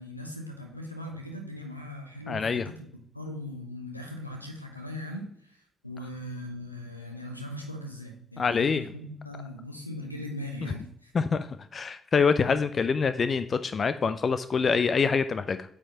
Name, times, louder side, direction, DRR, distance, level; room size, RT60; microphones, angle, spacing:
voice 1, 0.0-2.9 3.1-5.6 5.8-11.1, left 1 dB, 90° left, 4 dB, 0.7 m, -39 dB
voice 2, 2.3-2.7 8.4-8.8 11.1-11.5 11.7-15.6, left 5 dB, 40° left, 12 dB, 0.3 m, -25 dB
8.6 x 4.5 x 2.8 m, 0.66 s
figure-of-eight pair, 40°, 0 cm